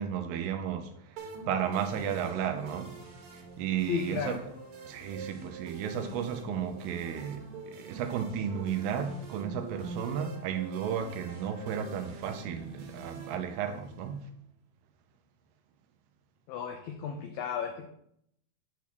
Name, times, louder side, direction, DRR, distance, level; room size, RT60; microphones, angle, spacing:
voice 1, 0.0-2.9 3.3-4.3 4.9-14.3, right 8 dB, 80° right, 6 dB, 2.6 m, -34 dB
sound 1, 1.2-14.2, right 4 dB, 65° right, 2.7 m, -46 dB
voice 2, 3.9-4.4 16.5-17.9, left 6 dB, 90° left, 5 dB, 2.0 m, -34 dB
9.5 x 3.6 x 6.0 m, 0.71 s
omnidirectional pair, 4.9 m